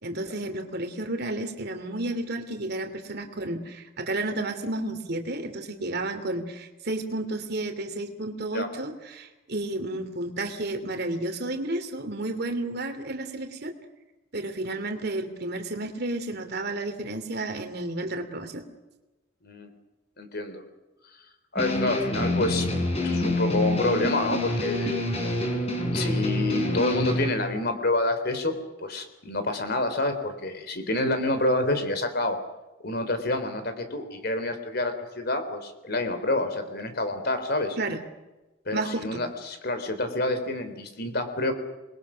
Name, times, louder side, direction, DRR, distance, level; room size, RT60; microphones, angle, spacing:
voice 1, 0.0-13.7 14.3-18.6 37.8-38.0 38.7-39.2, right 2 dB, 55° right, 6 dB, 2.8 m, -32 dB
voice 2, 20.2-20.6 21.1-21.2 21.5-22.7 23.0-25.1 25.9-32.4 32.8-37.8 38.7-41.5, left 2 dB, 50° left, 8 dB, 3.6 m, -28 dB
sound 1, 21.6-27.3, left 1 dB, 30° left, 5.7 m, -27 dB
28.0 x 22.0 x 6.4 m, 1.1 s
head